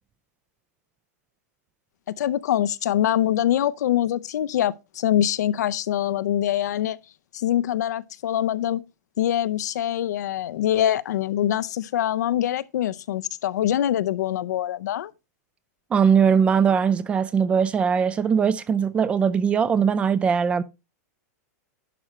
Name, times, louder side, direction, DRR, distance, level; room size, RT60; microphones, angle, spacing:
voice 1, 2.2-7.0 7.3-8.8 9.2-15.1, left 11 dB, 80° left, 0.6 m, -24 dB
voice 2, 15.9-20.6, right 6 dB, 10° right, 0.3 m, -20 dB
11.0 x 5.0 x 4.2 m
supercardioid pair, 165°, 9 cm